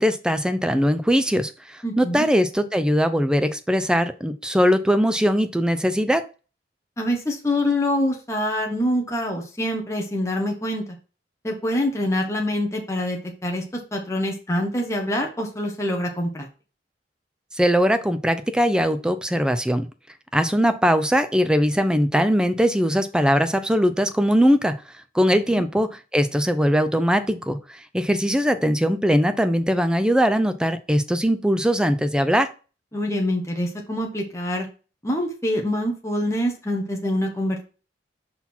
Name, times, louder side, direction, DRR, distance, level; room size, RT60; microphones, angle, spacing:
voice 1, 0.0-6.2 17.6-19.9 20.3-24.7 25.1-32.5, equal, 5° right, 10 dB, 0.5 m, -21 dB
voice 2, 1.8-2.2 7.0-10.8 11.4-13.6 13.9-16.5 25.5-25.6 32.9-34.7 35.0-37.6, left 1 dB, 15° left, 0 dB, 1.1 m, -25 dB
5.7 x 4.1 x 4.3 m, 0.34 s
head